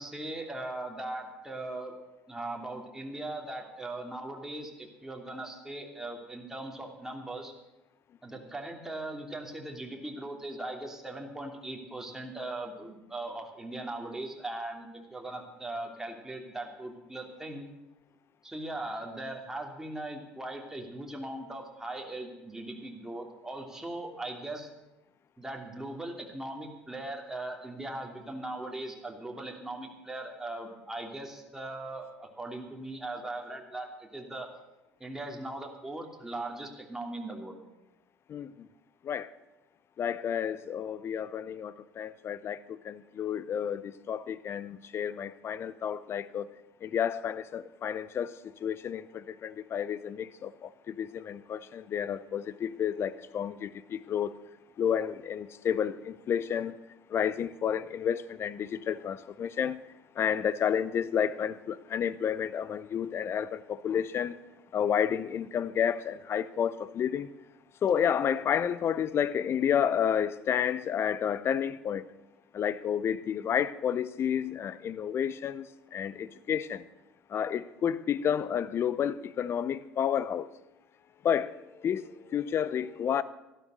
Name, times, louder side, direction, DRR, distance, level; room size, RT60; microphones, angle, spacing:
voice 1, 0.0-1.9 2.3-7.5 8.2-17.7 18.4-24.7 25.4-34.5 35.0-37.6, right 2 dB, 10° right, 2.9 m, -39 dB
voice 2, 38.3-38.7 39.0-39.3 40.0-46.5 46.8-54.4 54.8-56.8 57.1-59.9 60.1-64.4 64.7-67.3 67.8-72.1 72.5-76.8 77.3-80.5 81.2-83.2, left 8 dB, 45° left, 0.7 m, -31 dB
12.5 x 12.0 x 6.6 m
hypercardioid pair, 65°, 6 cm